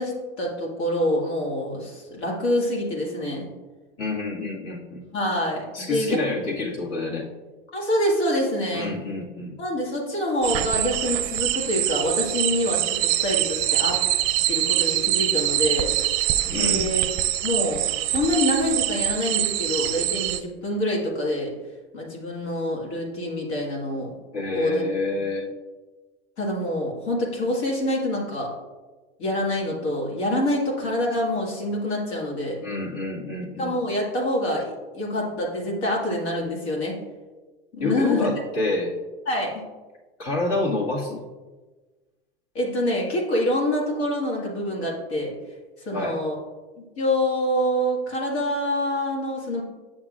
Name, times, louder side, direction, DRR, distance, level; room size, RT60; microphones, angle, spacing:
voice 1, 0.0-3.5 5.1-6.2 7.7-8.9 9.6-14.0 14.5-15.9 16.5-17.0 17.4-21.5 21.9-24.1 24.5-24.8 26.4-28.5 29.2-32.6 33.6-37.0 37.7-38.4 39.3-39.6 42.5-45.3 45.8-46.3 46.8-49.6, left 1 dB, 80° left, -2 dB, 2.0 m, -26 dB
voice 2, 4.0-5.0 5.7-7.3 8.7-9.5 16.5-16.9 24.3-25.5 32.6-33.7 37.8-38.9 40.2-41.2 45.9-46.2, left 3 dB, 55° left, -3 dB, 2.0 m, -28 dB
sound 1, 10.4-20.4, right 14 dB, 45° right, 0.5 m, -24 dB
7.8 x 6.2 x 2.5 m, 1.3 s
hypercardioid pair, 110°, 32 cm